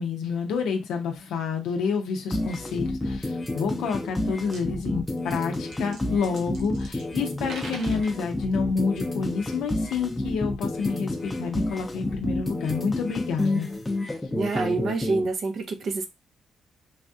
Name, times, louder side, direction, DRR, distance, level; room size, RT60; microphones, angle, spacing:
voice 1, 0.0-13.7, left 5 dB, 85° left, 3 dB, 0.5 m, -28 dB
sound 1, 2.3-15.2, left 2 dB, 15° left, 0.6 m, -30 dB
sound 2, 4.4-4.6 5.2-7.1 7.4-8.2, right 3 dB, 75° right, 0.9 m, -42 dB
voice 2, 14.4-16.1, right 3 dB, 55° right, 5 dB, 0.5 m, -27 dB
3.3 x 2.3 x 2.6 m, 0.23 s
cardioid pair, 90°, 0 cm